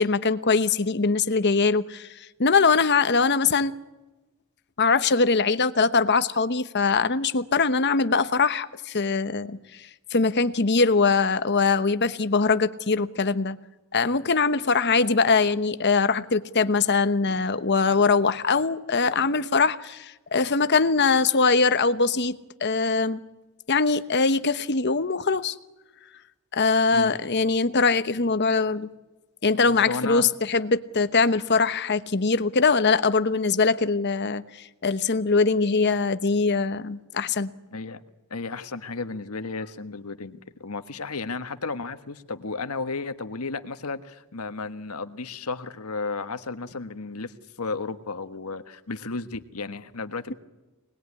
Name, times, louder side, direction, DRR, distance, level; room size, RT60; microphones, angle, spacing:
voice 1, 0.0-3.7 4.8-13.6 13.9-23.2 23.7-25.5 26.5-28.9 29.4-37.5, left 4 dB, 50° left, 1.0 m, -22 dB
voice 2, 29.6-30.3 37.7-38.0 38.3-50.3, left 3 dB, 80° left, 1.5 m, -33 dB
25.0 x 20.0 x 9.8 m
head